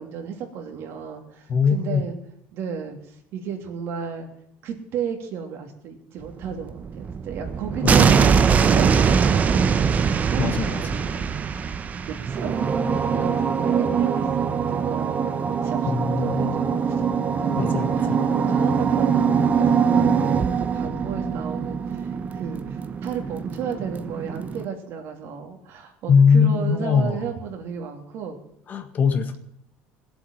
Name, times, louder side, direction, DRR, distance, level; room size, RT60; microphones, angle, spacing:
voice 1, 0.0-2.2 2.5-4.3 4.6-8.4 8.7-9.9 10.2-11.7 12.0-15.3 15.6-17.0 17.4-28.4, right 7 dB, 60° right, 3 dB, 3.0 m, -34 dB
voice 2, 1.5-2.0 7.8-8.3 10.4-11.0 15.9-16.6 17.6-18.3 26.1-27.3 28.7-29.4, left 6 dB, 40° left, 8 dB, 1.7 m, -21 dB
sound 1, 6.4-24.7, right 6 dB, 35° right, 1.0 m, -22 dB
16.5 x 8.1 x 7.3 m, 0.75 s
supercardioid pair, 105°, 5 cm